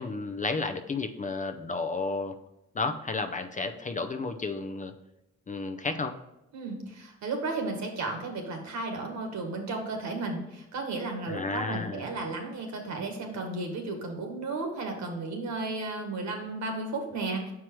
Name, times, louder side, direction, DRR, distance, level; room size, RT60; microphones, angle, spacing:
voice 1, 0.0-2.3 2.7-4.9 5.5-6.1 11.3-12.0, left 3 dB, 25° left, 7 dB, 0.5 m, -32 dB
voice 2, 6.5-17.5, right 3 dB, 65° right, 3 dB, 1.7 m, -34 dB
5.9 x 4.7 x 4.6 m, 0.90 s
cardioid pair, 90°, 30 cm